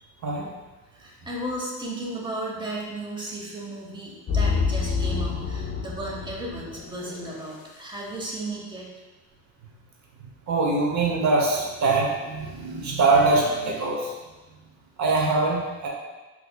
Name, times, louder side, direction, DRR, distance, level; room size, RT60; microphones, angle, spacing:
voice 1, 0.9-8.9, right 1 dB, 15° right, -3 dB, 0.8 m, -34 dB
sound 1, 4.3-7.5, left 5 dB, 50° left, 0.4 m, -28 dB
voice 2, 10.5-14.1 15.0-15.9, right 3 dB, 70° right, -1 dB, 0.9 m, -23 dB
4.1 x 2.9 x 2.3 m, 1.2 s
cardioid pair, 90°, 30 cm